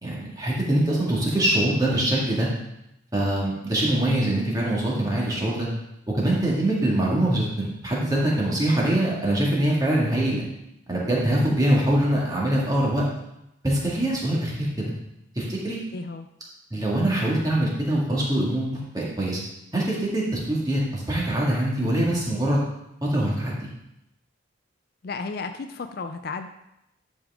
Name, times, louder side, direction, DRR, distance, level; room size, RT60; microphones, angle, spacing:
voice 1, 0.0-2.5 3.1-5.7 6.1-10.4 10.9-13.0 13.6-14.9 15.4-15.8 16.7-19.4 19.7-22.6 23.1-23.7, right 1 dB, 20° right, -4 dB, 1.8 m, -23 dB
voice 2, 15.9-16.3 25.0-26.5, left 4 dB, 50° left, 8 dB, 0.4 m, -33 dB
10.5 x 5.4 x 3.6 m, 0.86 s
head